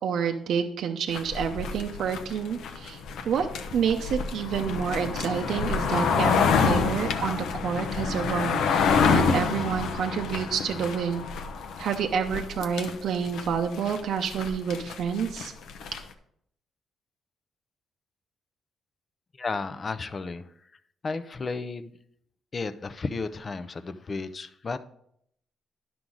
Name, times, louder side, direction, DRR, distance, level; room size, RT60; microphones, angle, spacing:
voice 1, 0.0-3.0 3.3-3.5 3.7-11.3 11.8-15.5, right 7 dB, 60° right, 4 dB, 0.6 m, -29 dB
sound 1, 1.1-16.0, left 5 dB, 80° left, 0.8 m, -27 dB
voice 2, 19.4-20.4 21.0-21.9 22.5-24.8, left 4 dB, 25° left, 12 dB, 0.5 m, -33 dB
11.5 x 6.0 x 3.9 m, 0.71 s
cardioid pair, 160°, 0 cm